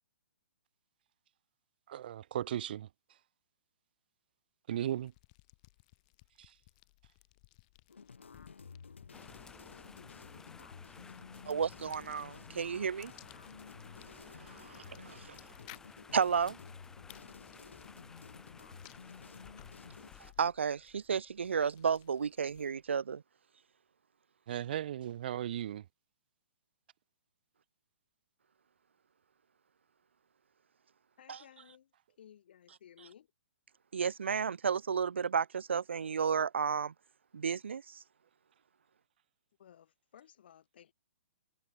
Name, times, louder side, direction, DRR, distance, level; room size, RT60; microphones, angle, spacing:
voice 1, 1.9-2.9 4.7-5.1 6.4-6.5 24.5-25.9, right 11 dB, 45° right, 1.2 m, -36 dB
sound 1, 4.7-22.9, left 24 dB, 35° left, 1.4 m, -61 dB
sound 2, 7.9-20.1, left 5 dB, 70° left, 0.6 m, -52 dB
sound 3, 9.1-20.3, left 4 dB, 10° left, 2.3 m, -56 dB
voice 2, 11.5-13.1 14.3-15.4 16.1-16.6 20.2-23.2 31.3-31.4 33.9-36.9 37.3-38.0, right 6 dB, 65° right, 0.4 m, -32 dB
voice 3, 31.2-33.3 39.6-40.9, left 9 dB, 50° left, 7.9 m, -58 dB
figure-of-eight pair, 125°, 7 cm